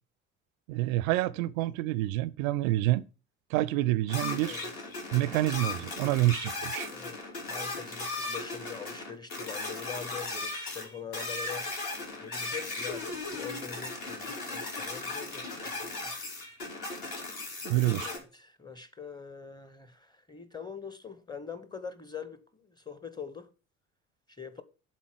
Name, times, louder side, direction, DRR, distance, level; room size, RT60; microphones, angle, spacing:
voice 1, 0.7-3.0 3.5-4.6 5.1-6.9 17.6-18.1, right 16 dB, 70° right, 0.5 m, -27 dB
sound 1, 4.1-18.2, left 2 dB, 55° left, 2.9 m, -37 dB
voice 2, 7.5-11.7 12.2-16.1 18.1-23.5 24.4-24.6, left 7 dB, 10° left, 1.0 m, -43 dB
7.4 x 4.0 x 6.5 m
figure-of-eight pair, 55°, 43 cm